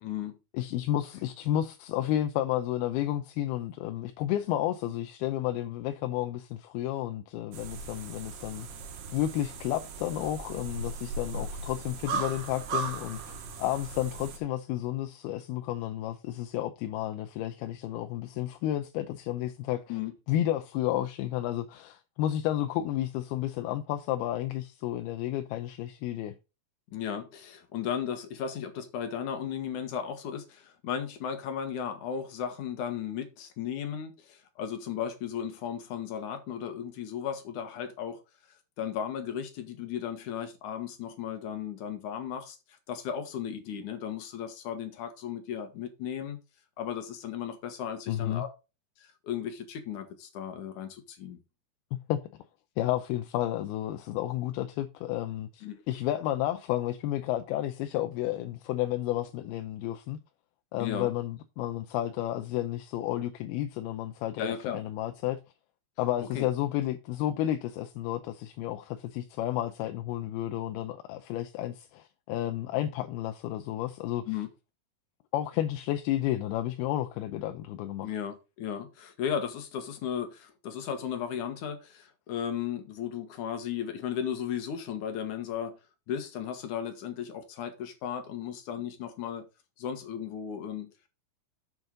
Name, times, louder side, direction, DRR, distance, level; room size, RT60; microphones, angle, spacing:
voice 1, 0.0-0.4 19.9-20.1 26.9-38.2 38.8-46.4 46.8-48.5 49.0-51.4 55.6-55.8 60.8-61.1 64.4-64.8 66.2-66.5 74.3-74.5 78.0-85.8 86.1-89.5 89.8-90.9, left 8 dB, 60° left, 2.6 m, -35 dB
voice 2, 0.5-8.7 9.1-20.0 20.3-26.3 48.1-48.5 52.1-52.2 52.8-60.2 60.7-65.4 66.0-74.3 75.3-78.1, left 13 dB, 80° left, 2.5 m, -31 dB
sound 1, 7.5-14.4, right 4 dB, 90° right, 3.7 m, -37 dB
7.9 x 7.5 x 3.9 m
omnidirectional pair, 4.6 m